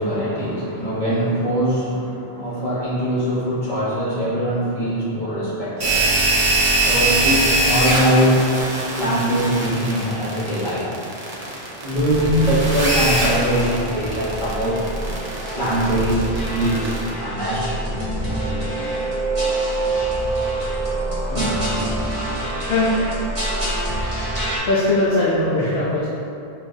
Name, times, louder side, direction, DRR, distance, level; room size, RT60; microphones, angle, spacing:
voice 1, 0.0-6.2 6.8-8.5 9.0-10.9 11.8-14.9 15.5-17.8 21.3-21.5, equal, 50° left, -9 dB, 1.3 m, -22 dB
sound 1, 5.8-17.1, right 2 dB, 55° right, 0.8 m, -22 dB
sound 2, 12.1-24.6, right 1 dB, 20° right, 1.0 m, -26 dB
voice 2, 22.7-23.0 23.5-23.6 24.7-26.1, left 2 dB, 75° left, -9 dB, 0.8 m, -20 dB
5.7 x 2.3 x 2.7 m, 2.7 s
omnidirectional pair, 1.0 m